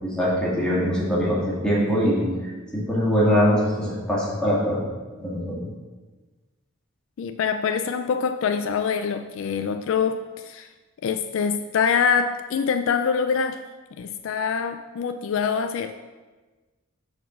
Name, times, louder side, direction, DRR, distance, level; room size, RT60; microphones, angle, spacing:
voice 1, 0.0-4.8 5.2-5.6, equal, 5° left, -7 dB, 2.0 m, -23 dB
voice 2, 7.2-10.7 11.0-13.6 14.0-16.0, left 6 dB, 65° left, 9 dB, 0.3 m, -25 dB
6.9 x 4.2 x 6.0 m, 1.3 s
head